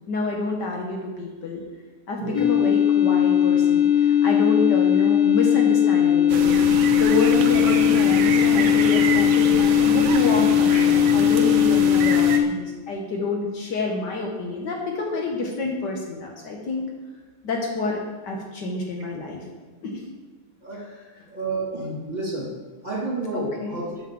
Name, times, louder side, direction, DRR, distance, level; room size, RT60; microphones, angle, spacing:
voice 1, 0.1-1.6 2.1-16.8 17.4-19.4 19.8-20.0 20.7-21.3 23.3-23.8, left 2 dB, 65° left, 0 dB, 1.7 m, -28 dB
sound 1, 2.3-12.4, left 10 dB, 30° left, 0.7 m, -18 dB
sound 2, 6.3-12.4, right 6 dB, 80° right, 1.5 m, -28 dB
voice 2, 21.3-22.5 22.8-24.0, right 2 dB, 20° right, -7 dB, 2.8 m, -30 dB
6.9 x 5.9 x 7.3 m, 1.4 s
omnidirectional pair, 2.1 m